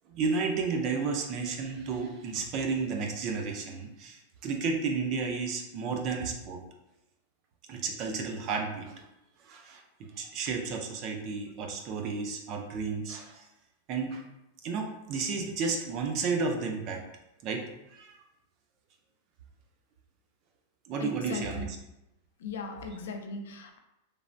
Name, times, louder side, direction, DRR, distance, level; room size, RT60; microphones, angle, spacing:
voice 1, 0.1-6.6 7.7-9.0 9.4-9.8 10.2-13.4 13.9-14.2 14.6-17.0 17.4-17.7 17.9-18.2 20.9-21.8, right 4 dB, 35° right, 3 dB, 0.4 m, -32 dB
voice 2, 21.0-21.7 22.4-23.8, left 4 dB, 85° left, 4 dB, 0.4 m, -38 dB
3.2 x 2.1 x 2.5 m, 0.89 s
supercardioid pair, 165°, 0 cm